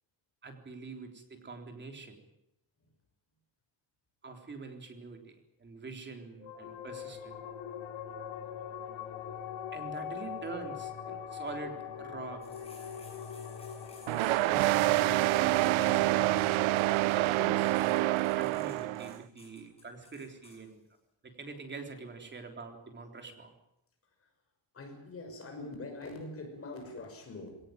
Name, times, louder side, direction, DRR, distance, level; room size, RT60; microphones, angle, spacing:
voice 1, 0.4-2.2 4.2-7.4 9.7-12.4 14.5-16.8 17.1-20.8 21.2-23.5, right 4 dB, 25° right, 4 dB, 3.6 m, -45 dB
sound 1, 6.4-19.3, left 8 dB, 75° left, 3.0 m, -43 dB
sound 2, 12.4-20.6, left 2 dB, 10° left, 7.4 m, -56 dB
sound 3, 14.1-19.2, right 18 dB, 90° right, 0.8 m, -27 dB
voice 2, 24.7-27.6, left 2 dB, 30° left, 4 dB, 6.4 m, -43 dB
21.5 x 18.5 x 9.3 m, 0.84 s
cardioid pair, 160°, 46 cm